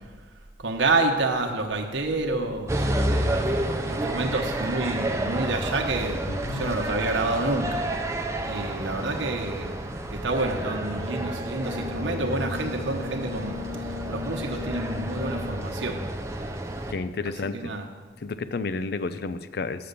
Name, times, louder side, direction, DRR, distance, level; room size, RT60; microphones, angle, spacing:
voice 1, 0.6-6.2 6.5-7.8 8.4-9.8 10.1-16.0 17.2-17.8, right 2 dB, 80° right, 2 dB, 1.1 m, -28 dB
sound 1, 2.7-16.9, right 1 dB, 15° right, 0.6 m, -30 dB
voice 2, 6.3-6.9 16.9-17.7 18.2-19.9, left 3 dB, 55° left, 13 dB, 0.4 m, -31 dB
Brass instrument, 11.2-15.6, left 7 dB, 90° left, 2.9 m, -38 dB
7.7 x 6.7 x 6.8 m, 1.4 s
head